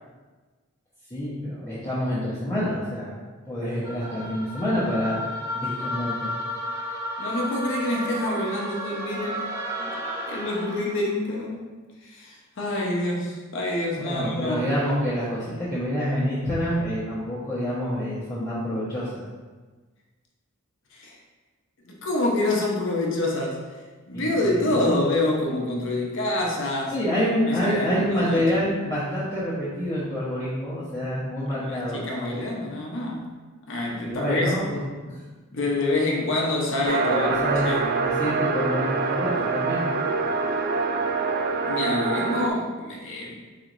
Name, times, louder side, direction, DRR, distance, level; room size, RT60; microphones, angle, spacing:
voice 1, 1.1-3.1 3.5-5.2 5.5-6.3 14.0-19.2 24.1-25.0 26.9-32.5 34.0-34.8 35.0-35.2 37.1-37.7 38.0-39.8, equal, 15° left, -12 dB, 0.9 m, -27 dB
sound 1, 3.8-11.1, equal, 15° right, 0.9 m, -33 dB
voice 2, 7.2-9.5 9.8-9.9 10.3-11.7 12.0-14.7 20.9-21.2 21.8-23.6 24.1-27.0 27.4-28.4 31.5-33.2 33.7-34.5 35.5-37.3 37.6-37.8 41.7-43.4, left 2 dB, 60° left, -1 dB, 0.8 m, -27 dB
sound 2, 36.8-42.5, right 4 dB, 45° right, 0.3 m, -25 dB
4.6 x 4.2 x 2.6 m, 1.3 s
head